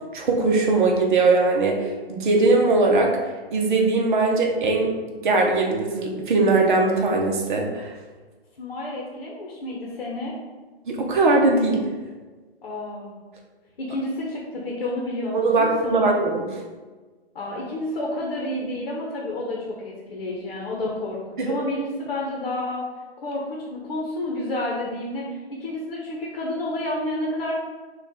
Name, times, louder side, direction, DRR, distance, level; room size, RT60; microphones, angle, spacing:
voice 1, 0.1-3.1 3.5-4.9 5.2-7.9 10.9-11.9 15.3-16.5 21.4-21.5, right 3 dB, 50° right, 0 dB, 0.8 m, -20 dB
voice 2, 8.6-10.3 12.6-13.2 13.8-16.1 17.3-22.9 23.2-27.5, left 1 dB, 55° left, -2 dB, 0.9 m, -30 dB
4.3 x 2.5 x 3.6 m, 1.3 s
hypercardioid pair, 150°, 32 cm